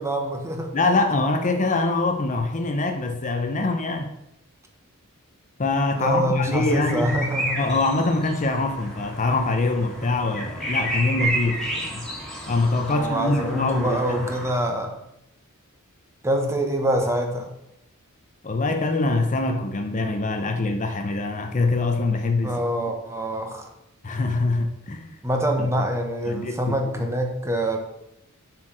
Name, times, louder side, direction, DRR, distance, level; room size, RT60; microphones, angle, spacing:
voice 1, 0.0-0.7 5.9-7.6 12.9-14.9 16.2-17.5 22.4-23.7 25.2-27.8, equal, 15° right, 1.2 m, -25 dB
voice 2, 0.7-4.1 5.6-7.2 7.6-12.1 12.5-14.3 18.4-22.6 24.0-25.2 25.6-25.7 26.3-27.0, left 3 dB, 35° left, 0.7 m, -24 dB
sound 1, 6.6-14.5, right 1 dB, ahead, 2.2 m, -31 dB
7.3 x 4.6 x 6.3 m
head